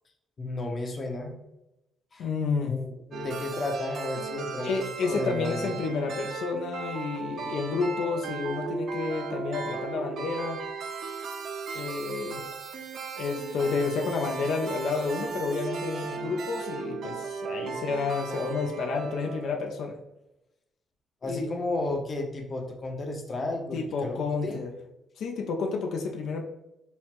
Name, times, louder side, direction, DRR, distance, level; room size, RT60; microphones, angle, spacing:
voice 1, 0.4-1.4 2.1-2.3 2.6-5.8 21.2-24.6, left 2 dB, 40° left, 3 dB, 0.8 m, -33 dB
voice 2, 2.2-2.7 4.6-10.6 11.7-12.4 13.2-20.0 21.2-21.5 23.7-24.7 25.2-26.4, left 4 dB, 75° left, 2 dB, 0.5 m, -30 dB
sound 1, 3.1-19.7, right 4 dB, 65° right, 0.5 m, -36 dB
5.5 x 2.1 x 3.0 m, 0.90 s
cardioid pair, 90°, 0 cm